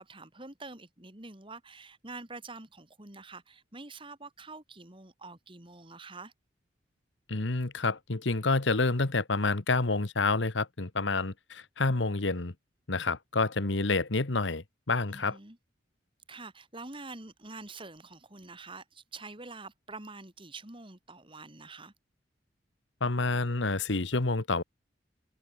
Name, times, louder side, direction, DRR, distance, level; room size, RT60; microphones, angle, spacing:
voice 1, 0.0-6.3 15.1-15.6 16.3-21.9, right 3 dB, 25° right, 3.0 m, -46 dB
voice 2, 7.3-12.5 12.9-15.4 23.0-24.6, left 3 dB, 80° left, 1.4 m, -28 dB
head